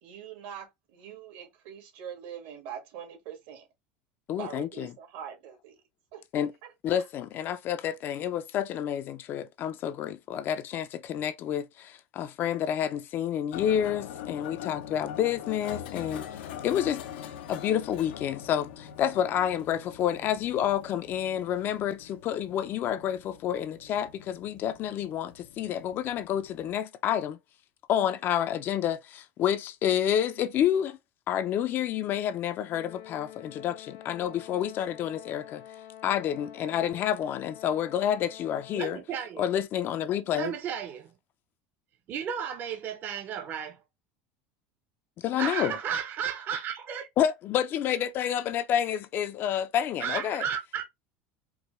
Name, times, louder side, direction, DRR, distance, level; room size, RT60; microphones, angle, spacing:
voice 1, 0.0-3.7 4.3-5.8 6.1-6.2 45.7-45.8, right 8 dB, 75° right, 1.7 m, -43 dB
voice 2, 4.3-4.9 6.3-6.5 6.8-16.3 16.6-17.0 17.5-27.4 27.9-31.0 31.3-35.6 36.0-39.0 39.4-40.5 45.2-45.7 47.2-50.4, left 10 dB, 40° left, 0.4 m, -29 dB
sound 1, 13.5-26.8, left 9 dB, 90° left, 0.7 m, -43 dB
Brass instrument, 32.7-39.1, left 11 dB, 70° left, 1.1 m, -47 dB
voice 3, 38.7-39.4 40.3-41.1 42.1-43.8 45.4-47.1 50.0-50.8, right 8 dB, 40° right, 0.7 m, -33 dB
4.7 x 2.2 x 3.0 m
supercardioid pair, 135°, 5 cm